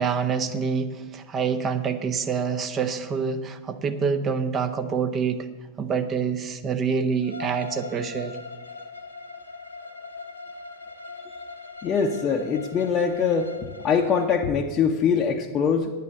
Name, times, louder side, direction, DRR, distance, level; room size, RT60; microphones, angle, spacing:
voice 1, 0.0-5.5 5.8-8.4, right 6 dB, 25° right, 8 dB, 0.8 m, -26 dB
Bowed string instrument, 7.2-14.4, left 4 dB, 80° left, 1.1 m, -40 dB
voice 2, 11.8-15.9, left 6 dB, 30° left, 1 dB, 0.8 m, -23 dB
9.5 x 9.2 x 6.7 m, 1.3 s
figure-of-eight pair, 90°, 0 cm